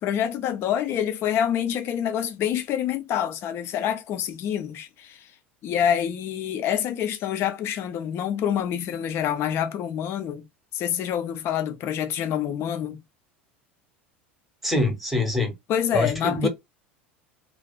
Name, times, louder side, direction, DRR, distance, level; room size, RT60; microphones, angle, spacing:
voice 1, 0.0-5.3 5.6-10.4 10.7-13.0 15.7-16.5, left 9 dB, 40° left, 0.5 m, -26 dB
voice 2, 14.6-15.5 15.9-16.5, left 2 dB, ahead, 0.9 m, -24 dB
2.5 x 2.3 x 2.2 m
figure-of-eight pair, 75°, 6 cm